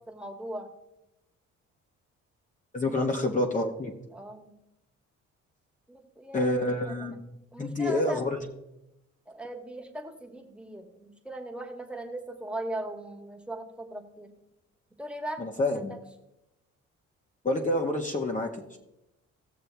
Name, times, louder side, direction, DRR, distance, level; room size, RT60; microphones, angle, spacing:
voice 1, 0.1-0.7 2.9-3.1 4.1-4.5 5.9-7.2 7.5-8.3 9.3-14.3 15.0-15.4 15.7-16.0, right 1 dB, 5° right, 2 dB, 1.6 m, -39 dB
voice 2, 2.7-3.9 6.3-7.2 7.6-8.4 15.4-16.0 17.4-18.8, left 2 dB, 25° left, 1 dB, 1.2 m, -28 dB
17.0 x 6.7 x 3.4 m, 0.90 s
cardioid pair, 90°, 30 cm